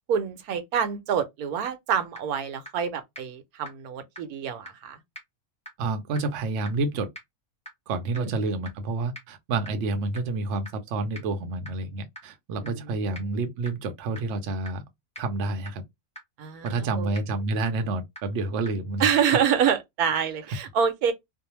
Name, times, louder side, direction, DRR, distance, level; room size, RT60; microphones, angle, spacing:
voice 1, 0.1-5.0 8.2-8.3 12.6-13.3 16.4-17.1 19.0-21.1, right 7 dB, 80° right, 1.1 m, -27 dB
sound 1, 1.7-1.8 2.2-2.3 2.7-2.8 3.2-3.3 3.7-3.8 4.2-4.3 4.7-4.8 5.2-5.3 5.7-5.8 6.2-6.3 6.7-6.8 7.2-7.3 7.7-7.8 8.2-8.3 8.7-8.8 9.2-9.3 9.7-9.8 10.2-10.3 10.7-10.8 11.2-11.3 11.7-11.8 12.2-12.3 12.7-12.8 13.1-13.2 13.7-13.8 14.2-14.3 14.7-14.8 15.2-15.3 15.7-15.8 16.2-16.3 16.7-16.8 17.2-17.3 17.7-17.8 18.2-18.3 18.7-18.8 19.2-19.3 19.7-19.8 20.2-20.3, equal, 5° left, 0.5 m, -40 dB
voice 2, 5.8-7.1 7.9-14.8 15.2-15.8 16.6-19.2, right 3 dB, 65° right, 0.7 m, -29 dB
2.6 x 2.1 x 2.9 m
omnidirectional pair, 1.6 m